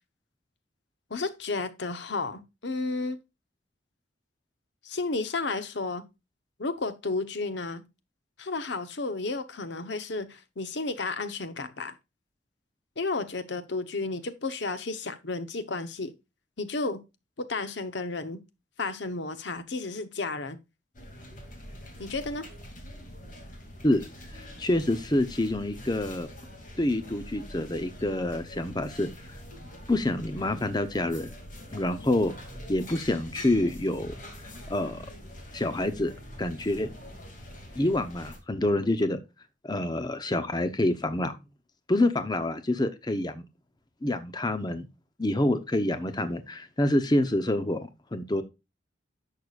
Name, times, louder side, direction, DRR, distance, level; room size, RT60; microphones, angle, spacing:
voice 1, 1.1-3.2 4.8-6.0 6.6-7.8 8.4-12.0 13.0-16.1 16.6-17.0 17.4-18.4 18.8-20.6 22.0-22.5, left 3 dB, 70° left, 0.9 m, -32 dB
sound 1, 20.9-38.4, equal, 45° left, 2.5 m, -44 dB
voice 2, 24.3-26.3 26.8-29.4 29.9-31.3 31.7-32.3 32.7-34.2 34.7-35.1 35.5-36.1 36.4-36.9 37.8-39.2 39.6-41.4 41.9-43.4 44.0-44.9 45.2-48.4, left 1 dB, 20° left, 0.7 m, -27 dB
10.5 x 6.7 x 2.4 m
head